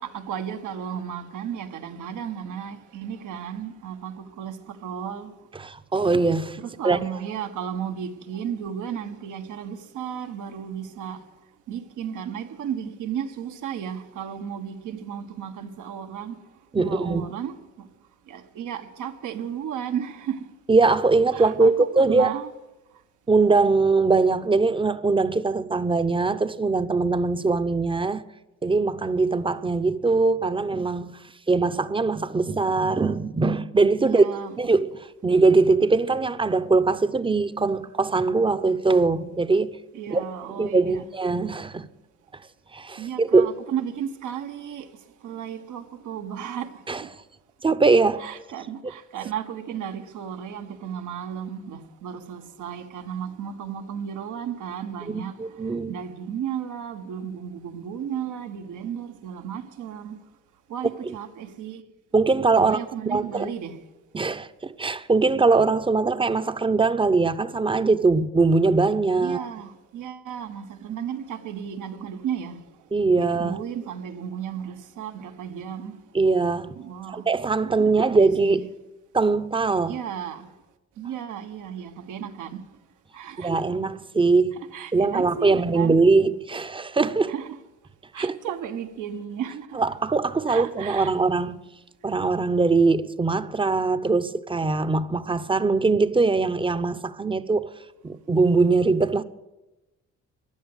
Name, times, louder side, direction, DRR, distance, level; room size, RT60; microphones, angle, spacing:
voice 1, 0.0-5.3 6.6-11.2 11.7-16.4 16.8-17.9 18.3-20.5 21.3-22.5 34.0-34.5 39.9-41.1 43.0-44.9 45.2-47.1 48.2-60.2 60.7-61.8 62.6-63.8 69.2-72.6 73.2-76.0 76.7-77.3 77.6-78.7 79.9-80.5 81.0-82.6 83.1-83.6 84.7-86.0 87.3-87.6 88.1-89.8 90.5-91.1, right 8 dB, 80° right, 1.4 m, -34 dB
voice 2, 5.6-6.6 6.8-7.0 16.7-17.3 20.7-22.3 23.3-28.2 28.6-31.2 31.5-34.3 34.6-39.8 40.1-40.2 40.6-41.9 42.7-43.5 46.9-47.0 47.6-48.3 55.1-56.0 61.0-61.1 62.1-62.8 63.1-63.5 64.1-69.5 72.9-73.6 76.1-76.8 77.1-78.7 79.1-80.0 83.4-84.6 84.9-87.3 88.2-88.4 89.7-91.6 92.0-97.7 98.0-99.2, right 3 dB, 15° right, 0.7 m, -21 dB
15.5 x 10.5 x 8.0 m
cardioid pair, 90°, 30 cm